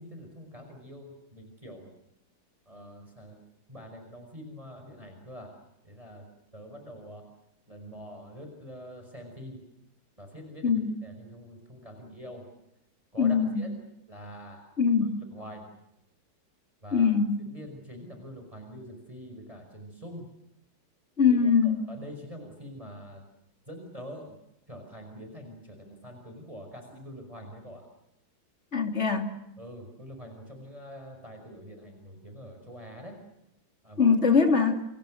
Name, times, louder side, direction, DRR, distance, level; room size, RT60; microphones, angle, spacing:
voice 1, 0.0-1.9 2.7-3.4 3.7-6.3 6.5-7.3 7.7-9.6 10.2-12.5 13.1-13.8 14.1-14.7 15.3-15.7 16.8-17.1 17.5-20.3 21.3-23.2 23.7-24.4 24.7-27.9 28.8-28.9 29.6-33.2 33.8-34.2 34.5-34.6, equal, 15° right, 4 dB, 5.6 m, -45 dB
voice 2, 13.2-13.6 14.8-15.2 16.9-17.4 21.2-21.8 28.7-29.3 34.0-34.8, left 5 dB, 35° left, 5 dB, 3.1 m, -22 dB
29.0 x 28.0 x 6.4 m, 0.84 s
omnidirectional pair, 2.1 m